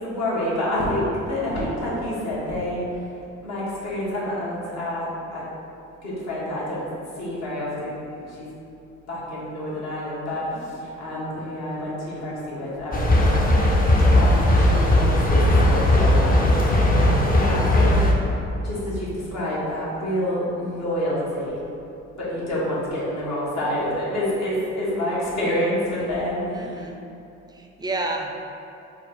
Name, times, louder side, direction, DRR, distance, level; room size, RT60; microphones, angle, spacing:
voice 1, 0.0-2.8 3.4-5.4 6.0-6.9 7.2-8.5 9.1-13.1 14.1-16.5 17.2-18.0 18.5-21.6 22.2-26.7, left 1 dB, 60° left, -8 dB, 1.5 m, -28 dB
sound 1, 12.9-18.1, left 1 dB, 30° left, 0.6 m, -18 dB
voice 2, 26.5-27.0 27.5-28.3, right 2 dB, 15° right, 1 dB, 0.4 m, -30 dB
4.5 x 2.3 x 4.3 m, 2.8 s
cardioid pair, 90°, 30 cm